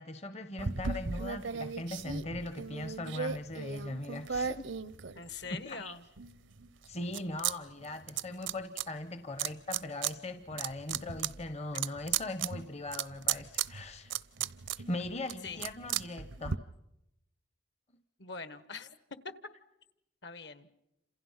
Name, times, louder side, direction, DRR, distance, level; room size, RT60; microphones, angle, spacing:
voice 1, 0.0-4.7 5.5-5.9 6.9-14.2 14.8-16.6, left 2 dB, 35° left, 10 dB, 0.9 m, -40 dB
sound 1, 0.6-5.6 6.2-7.5 7.8-8.8 9.4-10.1 10.5-16.6, right 8 dB, 75° right, 0.8 m, -36 dB
voice 2, 5.1-6.1 15.4-15.6 18.2-18.9 19.2-19.3 20.2-20.7, left 4 dB, 60° left, 13 dB, 1.4 m, -43 dB
29.5 x 27.5 x 5.7 m, 0.86 s
head